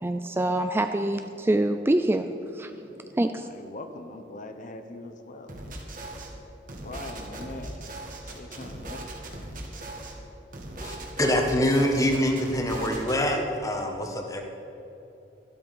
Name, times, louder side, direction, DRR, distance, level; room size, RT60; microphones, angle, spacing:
voice 1, 0.0-2.7 3.2-3.5, right 1 dB, 15° right, 8 dB, 0.4 m, -25 dB
voice 2, 3.4-5.5 6.8-7.8 8.2-9.1, left 2 dB, 45° left, 7 dB, 0.9 m, -41 dB
sound 1, 5.5-6.3 6.7-10.1 10.5-13.2, right 1 dB, 50° right, 2.0 m, -39 dB
voice 3, 10.8-14.4, equal, 20° left, 3 dB, 1.4 m, -25 dB
12.5 x 12.5 x 5.5 m, 2.9 s
head